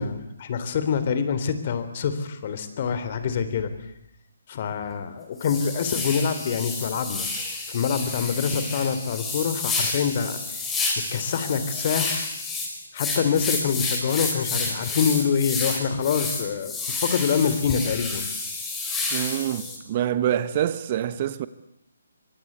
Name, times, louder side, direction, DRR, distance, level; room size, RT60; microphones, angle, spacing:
voice 1, 0.0-3.7 4.5-7.3 7.7-10.6 11.1-12.3 12.9-16.7 17.0-18.3, left 6 dB, 40° left, 3.7 m, -25 dB
sound 1, 4.8-4.9 5.4-19.8, left 3 dB, 10° left, 5.5 m, -30 dB
voice 2, 19.1-21.5, right 11 dB, 35° right, 1.2 m, -26 dB
24.5 x 24.5 x 8.3 m
figure-of-eight pair, 145°, 0 cm